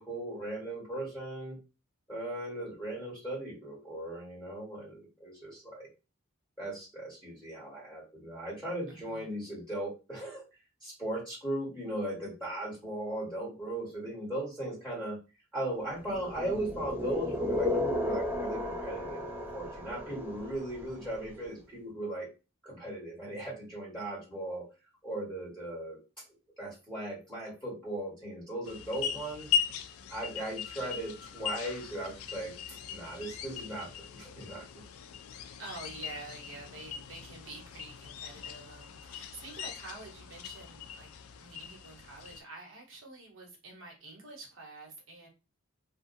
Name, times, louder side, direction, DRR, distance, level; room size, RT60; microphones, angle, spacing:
voice 1, 0.0-1.6 2.1-5.9 6.6-10.4 10.8-15.2 15.5-19.2 19.5-22.3 22.6-24.7 25.0-26.0 26.6-29.5 30.1-32.5 32.9-34.6, right 1 dB, 10° left, -7 dB, 1.4 m, -38 dB
voice 2, 8.9-9.3 35.6-41.1 41.4-45.3, right 2 dB, 65° right, 0 dB, 1.0 m, -48 dB
sound 1, 16.1-21.1, left 1 dB, 10° right, 0.3 m, -34 dB
sound 2, 28.6-42.4, left 8 dB, 75° left, 0.3 m, -39 dB
2.5 x 2.2 x 2.6 m, 0.29 s
head